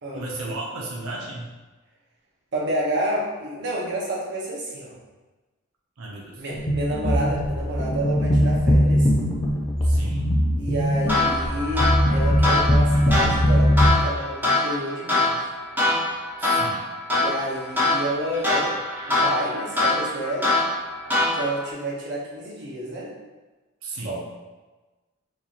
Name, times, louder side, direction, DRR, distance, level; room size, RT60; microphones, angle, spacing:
voice 1, 0.1-1.5 6.0-6.4 9.8-10.4 12.0-12.2 16.4-16.8 23.8-24.2, right 2 dB, 85° right, -2 dB, 0.6 m, -34 dB
voice 2, 2.5-4.9 6.4-9.1 10.6-15.4 17.1-18.8 19.0-20.5 21.3-23.1 24.0-24.2, right 1 dB, 55° right, -4 dB, 0.9 m, -29 dB
sound 1, 6.5-13.9, equal, 20° left, 0.4 m, -21 dB
sound 2, 11.1-21.7, left 2 dB, 10° right, 1.0 m, -24 dB
4.2 x 2.8 x 2.5 m, 1.2 s
head